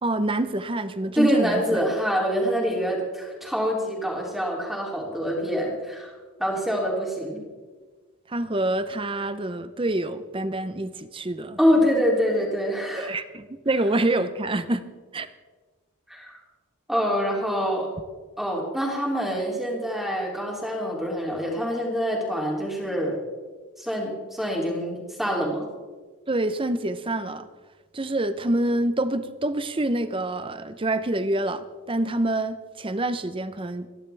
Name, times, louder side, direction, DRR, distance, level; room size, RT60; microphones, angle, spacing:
voice 1, 0.0-1.8 8.3-11.6 13.0-14.8 15.1-15.3 26.3-27.5 27.9-33.9, right 1 dB, 25° right, 12 dB, 0.7 m, -26 dB
voice 2, 1.2-6.1 6.4-7.4 11.6-13.1 16.1-16.4 16.9-17.9 18.4-23.2 23.8-25.6, equal, ahead, -2 dB, 2.9 m, -25 dB
29.5 x 11.0 x 3.4 m, 1.4 s
head